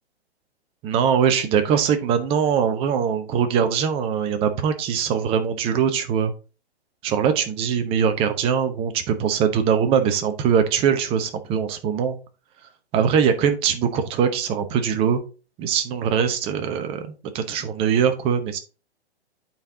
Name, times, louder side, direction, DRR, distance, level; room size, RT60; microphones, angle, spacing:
voice 1, 0.8-6.3 7.0-12.2 12.9-15.2 15.6-18.6, right 7 dB, 15° right, 8 dB, 0.7 m, -22 dB
8.8 x 4.4 x 3.7 m, 0.33 s
figure-of-eight pair, 120°, 33 cm